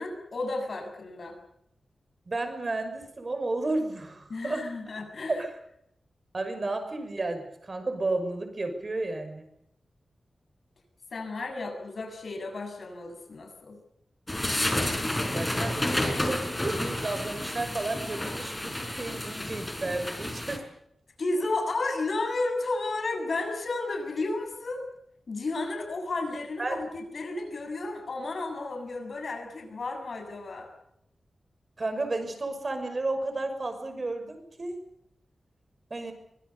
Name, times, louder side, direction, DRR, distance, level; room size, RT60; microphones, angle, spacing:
voice 1, 0.0-1.4 4.3-5.4 11.1-13.8 21.2-24.8 25.3-30.7, left 2 dB, 55° left, 5 dB, 7.4 m, -32 dB
voice 2, 2.3-4.6 5.3-5.5 6.3-9.5 15.3-20.6 26.6-26.8 31.8-34.8 35.9-36.1, right 2 dB, 35° right, 7 dB, 6.0 m, -32 dB
sound 1, 14.3-20.6, left 1 dB, 10° left, 5.8 m, -30 dB
25.0 x 23.5 x 7.1 m, 0.76 s
wide cardioid pair, 165°, 0 cm